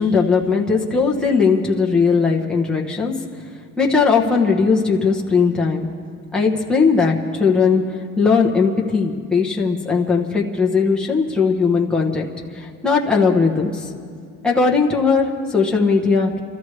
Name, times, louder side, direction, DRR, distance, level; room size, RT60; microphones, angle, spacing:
voice 1, 0.0-3.1 3.8-5.9 6.3-7.8 8.2-12.3 12.5-13.9 14.4-16.4, left 5 dB, 5° left, -2 dB, 1.0 m, -18 dB
28.0 x 13.5 x 3.2 m, 2.2 s
cardioid pair, 180°, 31 cm